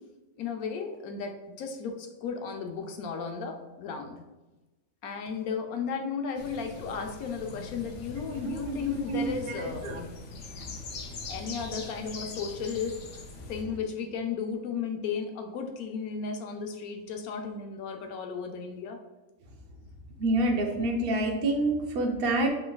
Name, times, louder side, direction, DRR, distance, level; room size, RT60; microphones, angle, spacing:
voice 1, 0.4-4.2 5.0-10.1 11.3-13.0 13.5-19.0, left 5 dB, 85° left, 4 dB, 1.1 m, -34 dB
sound 1, 6.4-13.6, left 3 dB, 65° left, 0.8 m, -42 dB
voice 2, 8.3-10.0 20.2-22.5, right 2 dB, 55° right, 2 dB, 0.7 m, -28 dB
5.9 x 3.2 x 2.3 m, 1.1 s
omnidirectional pair, 1.5 m